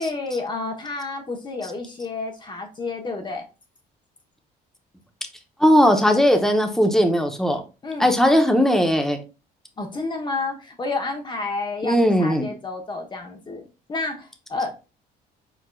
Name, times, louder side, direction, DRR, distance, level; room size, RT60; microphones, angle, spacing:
voice 1, 0.0-3.4 7.8-8.1 9.8-13.6 13.9-14.9, left 3 dB, 25° left, 1.0 m, -30 dB
voice 2, 5.6-7.6 8.0-9.2 11.8-12.5, equal, ahead, 0.9 m, -18 dB
4.7 x 4.6 x 2.3 m
cardioid pair, 110°, 17 cm